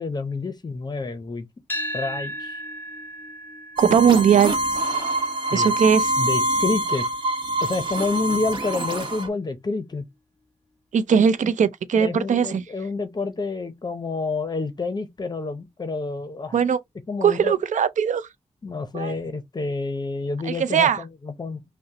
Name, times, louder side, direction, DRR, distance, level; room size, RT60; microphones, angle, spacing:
voice 1, 0.0-1.5 1.9-2.6 5.5-5.7 6.2-7.0 7.6-10.1 12.0-16.6 17.1-17.5 18.6-21.6, left 3 dB, 35° left, 0.6 m, -28 dB
sound 1, 1.7-9.9, equal, 15° left, 1.0 m, -38 dB
sound 2, 3.8-9.3, right 1 dB, 40° right, 1.1 m, -25 dB
voice 2, 3.8-4.5 5.5-6.1 10.9-12.6 16.5-16.8 17.2-18.3 18.9-19.1 20.4-21.0, right 7 dB, 90° right, 0.5 m, -19 dB
5.6 x 2.1 x 2.8 m
wide cardioid pair, 135°, 12 cm